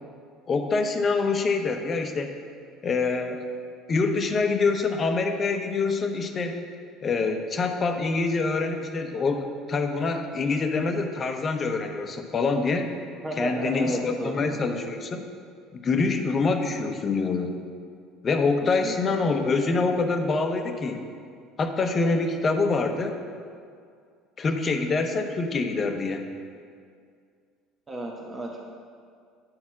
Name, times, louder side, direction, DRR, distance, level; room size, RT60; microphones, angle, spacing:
voice 1, 0.5-2.3 2.8-3.4 3.9-6.6 7.0-12.9 13.4-15.2 15.8-17.5 18.2-21.0 21.6-23.2 24.4-26.3, left 4 dB, 35° left, 6 dB, 0.8 m, -25 dB
voice 2, 13.2-14.4 18.8-18.9 27.9-28.6, right 1 dB, 30° right, -1 dB, 1.1 m, -32 dB
9.7 x 4.2 x 5.9 m, 2.2 s
hypercardioid pair, 75°, 0 cm